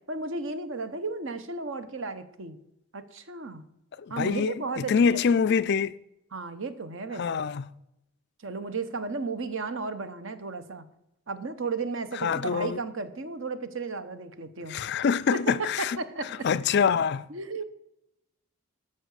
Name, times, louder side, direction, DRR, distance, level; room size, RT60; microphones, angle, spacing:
voice 1, 0.1-2.6 2.9-3.7 4.1-5.5 6.3-7.5 8.4-10.9 11.3-14.8 15.3-16.4 17.3-17.6, right 3 dB, 60° right, 0.9 m, -34 dB
voice 2, 4.2-6.0 7.2-7.6 12.2-12.8 14.7-16.0 16.4-17.2, left 6 dB, 50° left, 0.3 m, -25 dB
13.0 x 5.8 x 6.4 m
head